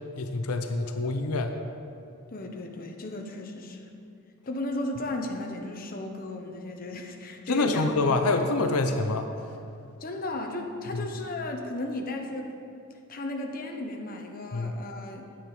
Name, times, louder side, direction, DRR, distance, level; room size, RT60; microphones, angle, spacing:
voice 1, 0.2-1.5 7.5-9.3 10.9-11.1 14.5-14.7, left 3 dB, 90° left, 5 dB, 0.7 m, -26 dB
voice 2, 2.3-3.9 4.5-7.9 8.3-8.4 10.0-12.6 13.1-15.3, left 2 dB, 40° left, 2 dB, 0.9 m, -35 dB
9.4 x 8.8 x 4.9 m, 2.6 s
head